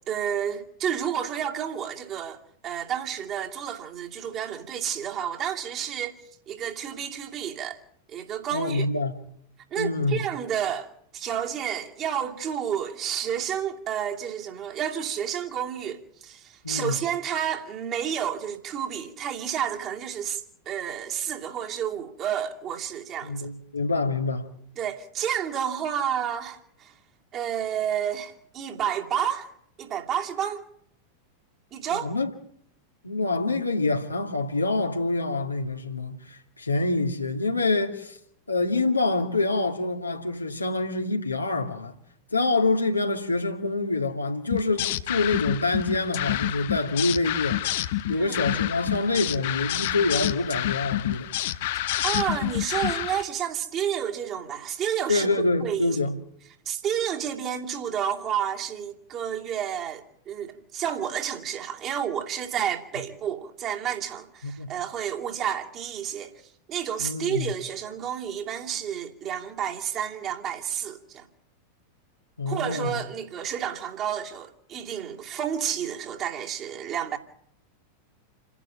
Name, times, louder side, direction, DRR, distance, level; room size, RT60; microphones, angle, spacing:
voice 1, 0.1-6.1 6.5-7.8 8.1-8.9 9.7-23.5 24.8-26.9 27.3-29.5 29.8-30.6 31.7-32.1 48.1-48.4 52.0-55.9 56.7-66.3 66.7-71.2 72.5-77.2, right 9 dB, 35° right, 2.6 m, -30 dB
voice 2, 8.5-9.2 9.8-10.2 16.6-17.0 23.2-24.5 31.9-32.3 33.0-38.2 38.5-42.0 42.3-51.3 55.1-56.1 64.4-64.7 67.0-67.5 72.4-73.0, left 3 dB, 80° left, 2.2 m, -26 dB
sound 1, 44.5-53.2, left 14 dB, 55° left, 0.9 m, -28 dB
28.5 x 11.0 x 8.9 m
figure-of-eight pair, 90°, 0 cm